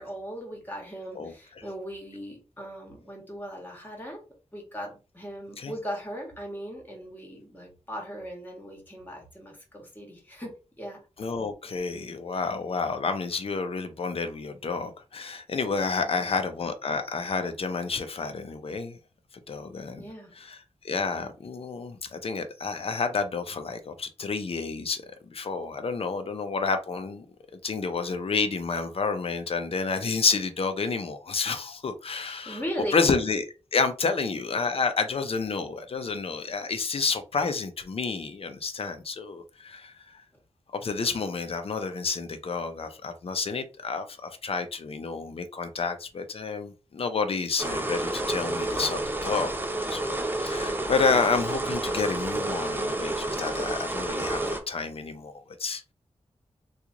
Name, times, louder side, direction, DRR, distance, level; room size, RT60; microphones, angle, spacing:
voice 1, 0.0-4.2 4.5-10.5 10.8-11.0 16.0-16.5 19.9-20.3 32.4-33.1, equal, 15° left, 1.4 m, -38 dB
voice 2, 11.2-19.0 19.5-20.1 20.4-20.6 20.8-27.3 27.6-32.6 32.9-33.5 33.7-40.2 40.7-55.9, left 4 dB, 55° left, 0.6 m, -30 dB
sound 1, 47.6-54.6, right 2 dB, 15° right, 0.6 m, -30 dB
3.0 x 2.4 x 3.7 m
wide cardioid pair, 135°, 12 cm